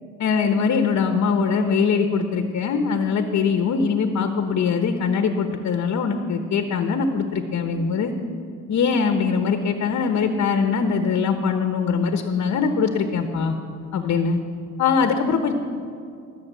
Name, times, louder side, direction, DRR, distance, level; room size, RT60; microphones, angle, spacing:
voice 1, 0.2-8.1 8.7-13.6 13.9-14.4 14.8-15.5, left 5 dB, 60° left, 6 dB, 1.1 m, -22 dB
19.5 x 6.6 x 8.3 m, 2.4 s
cardioid pair, 90°, 30 cm